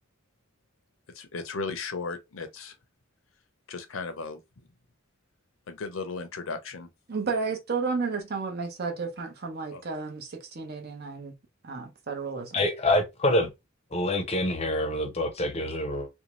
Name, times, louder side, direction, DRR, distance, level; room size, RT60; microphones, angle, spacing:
voice 1, 1.1-2.7 3.7-4.4 5.7-6.9 9.7-9.8, left 4 dB, 70° left, 0.6 m, -35 dB
voice 2, 7.1-11.3 11.6-12.6, right 4 dB, 50° right, 0.8 m, -32 dB
voice 3, 12.5-13.5 13.9-16.1, left 1 dB, 30° left, 0.6 m, -26 dB
2.6 x 2.2 x 3.0 m
head